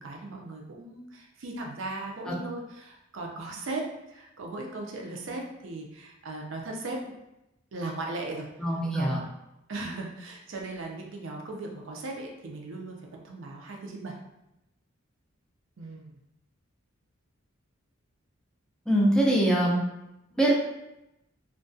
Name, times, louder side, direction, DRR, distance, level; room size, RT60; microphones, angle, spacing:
voice 1, 0.0-7.0 7.7-8.5 8.9-9.1 9.7-14.2 15.8-16.1, right 2 dB, 65° right, 0 dB, 0.5 m, -37 dB
voice 2, 8.6-9.2 18.9-19.8 20.4-20.5, right 1 dB, 5° left, -4 dB, 0.4 m, -23 dB
2.3 x 2.2 x 2.5 m, 0.89 s
head